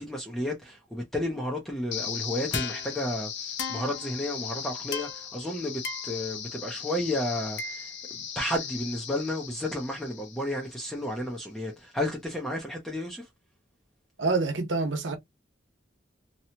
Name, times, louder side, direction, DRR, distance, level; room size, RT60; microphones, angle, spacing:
voice 1, 0.0-13.3, left 1 dB, ahead, 0.6 m, -32 dB
sound 1, 1.9-10.9, left 7 dB, 70° left, 0.6 m, -37 dB
voice 2, 14.2-15.2, right 3 dB, 85° right, 1.0 m, -27 dB
2.9 x 2.3 x 2.6 m
head